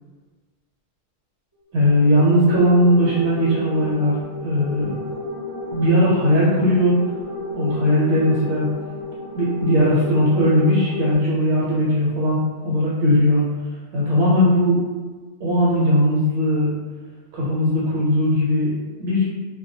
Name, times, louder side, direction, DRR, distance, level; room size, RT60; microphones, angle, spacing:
sound 1, 1.7-11.1, left 2 dB, 35° right, 0.3 m, -32 dB
voice 1, 1.7-4.9 5.7-7.0 7.5-8.7 9.3-13.5 13.9-14.8 15.4-16.7 17.3-18.7 19.0-19.2, equal, 75° right, -7 dB, 0.9 m, -18 dB
2.3 x 2.2 x 2.6 m, 1.4 s
omnidirectional pair, 1.2 m